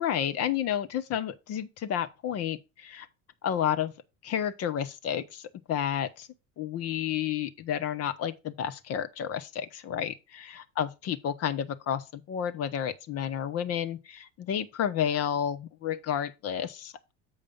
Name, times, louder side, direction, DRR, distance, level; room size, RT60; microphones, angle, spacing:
voice 1, 0.0-3.1 3.4-3.9 4.2-5.4 5.7-6.3 6.6-17.1, left 9 dB, 40° left, 0.8 m, -31 dB
7.2 x 5.0 x 5.2 m
figure-of-eight pair, 70°, 37 cm